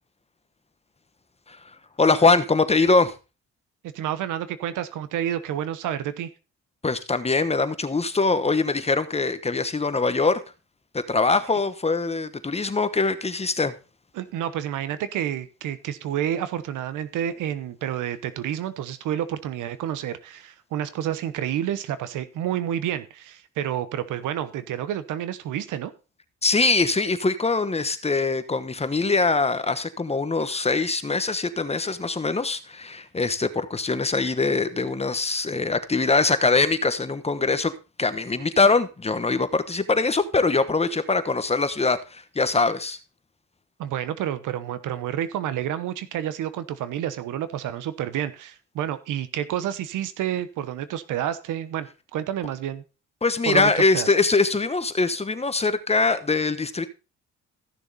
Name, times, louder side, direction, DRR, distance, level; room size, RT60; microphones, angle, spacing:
voice 1, 1.5-3.1 6.8-10.4 10.9-13.7 26.4-37.7 38.0-43.0 53.2-56.9, left 3 dB, 20° left, 1.1 m, -23 dB
voice 2, 3.9-6.3 14.1-25.9 43.8-52.8 53.5-54.1, right 10 dB, 85° right, 1.1 m, -29 dB
14.5 x 6.8 x 4.1 m
cardioid pair, 90°, 30 cm